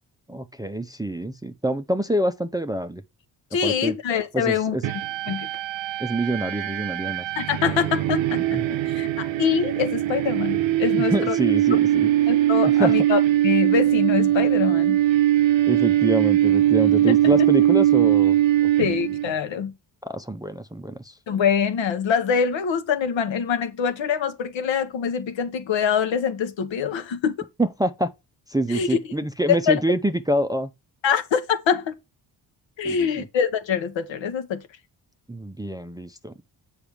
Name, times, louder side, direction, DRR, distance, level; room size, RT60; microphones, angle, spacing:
voice 1, 0.3-3.0 3.6-4.0 4.3-4.8 6.0-7.2 8.5-8.6 11.0-12.1 12.6-13.0 15.7-18.4 20.0-21.1 27.6-28.1 28.5-30.7 32.8-33.1 35.3-36.3, right 1 dB, 10° right, 0.5 m, -26 dB
voice 2, 3.5-4.7 5.3-5.5 7.4-8.6 8.9-11.4 11.7-11.8 12.3-15.0 17.0-17.4 18.8-19.7 21.3-27.3 28.7-29.0 29.5-29.8 31.0-31.9 32.8-34.6, left 7 dB, 65° left, 1.0 m, -24 dB
sound 1, 4.8-19.3, right 13 dB, 70° right, 0.7 m, -21 dB
7.0 x 5.0 x 3.4 m
supercardioid pair, 50°, 48 cm